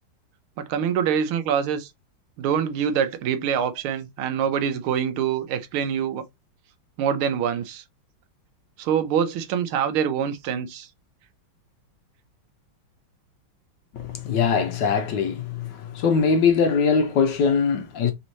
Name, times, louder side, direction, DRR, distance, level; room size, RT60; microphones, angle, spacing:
voice 1, 0.6-1.9 2.4-6.2 7.0-7.8 8.8-10.9, right 8 dB, 90° right, 1.6 m, -25 dB
voice 2, 13.9-18.1, left 5 dB, 65° left, 1.2 m, -22 dB
4.1 x 3.1 x 3.9 m
omnidirectional pair, 2.3 m